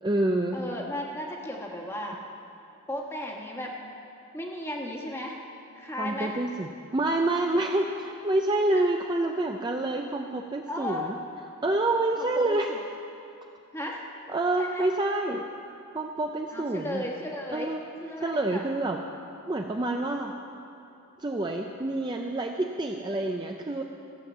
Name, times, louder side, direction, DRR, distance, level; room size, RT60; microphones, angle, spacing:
voice 1, 0.0-0.6 6.0-11.1 11.6-12.7 14.3-15.4 15.9-17.0 17.5-17.8 18.2-19.0 19.5-20.3 21.2-23.8, right 2 dB, 20° right, 2 dB, 0.4 m, -27 dB
voice 2, 0.5-2.2 2.9-3.7 4.3-5.4 5.7-6.4 8.7-8.8 10.7-11.1 12.2-12.8 13.7-14.0 14.6-14.9 16.5-17.7 18.0-18.6, left 1 dB, 10° left, -1 dB, 1.3 m, -35 dB
14.5 x 7.6 x 7.2 m, 2.7 s
head